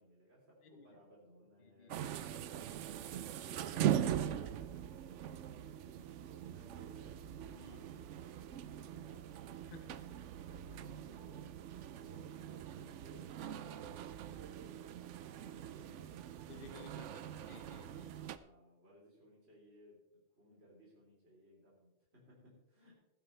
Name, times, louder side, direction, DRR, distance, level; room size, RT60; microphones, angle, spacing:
voice 1, 0.0-2.8 4.0-7.2 7.6-10.3 11.0-11.4 12.0-16.2 18.0-22.9, equal, 50° right, -4 dB, 3.8 m, -62 dB
voice 2, 1.6-2.1 7.5-7.9 9.7-10.2 16.5-18.2, left 3 dB, 45° left, 6 dB, 1.1 m, -56 dB
sound 1, 1.9-18.4, right 10 dB, 70° right, 0.9 m, -41 dB
15.0 x 12.0 x 3.3 m, 0.92 s
omnidirectional pair, 1.4 m